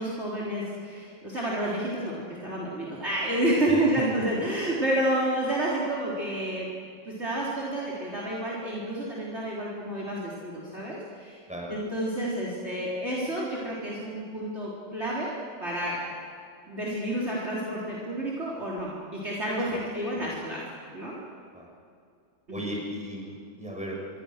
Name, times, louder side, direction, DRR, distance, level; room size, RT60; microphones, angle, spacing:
voice 1, 0.0-6.7 7.1-11.4 11.7-15.3 15.6-16.0 16.7-20.6 20.9-21.2 22.5-22.6, right 1 dB, 35° right, -6 dB, 4.1 m, -30 dB
voice 2, 3.7-4.3 11.5-11.8 19.7-19.8 20.1-20.3 21.5-21.7 22.5-24.2, right 1 dB, 5° right, -3 dB, 7.2 m, -36 dB
27.0 x 23.5 x 6.6 m, 2.3 s
omnidirectional pair, 2.1 m